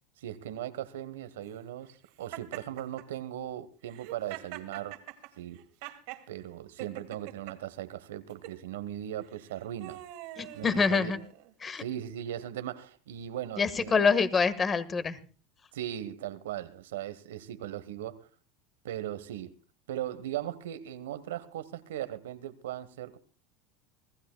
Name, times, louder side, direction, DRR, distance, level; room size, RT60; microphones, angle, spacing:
voice 1, 0.2-5.0 5.4-5.6 6.3-10.0 10.5-11.1 11.8-14.1 15.7-18.3 18.8-19.5 19.9-23.2, right 12 dB, 85° right, 1.2 m, -38 dB
Laughter, 2.3-3.1 3.9-6.2 6.8-7.6 8.3-8.6 9.3-11.5, right 15 dB, 70° right, 2.2 m, -44 dB
voice 2, 10.4-11.2 11.6-11.8 13.6-15.2, left 5 dB, 25° left, 1.5 m, -26 dB
26.0 x 16.0 x 2.2 m
supercardioid pair, 110°, 0 cm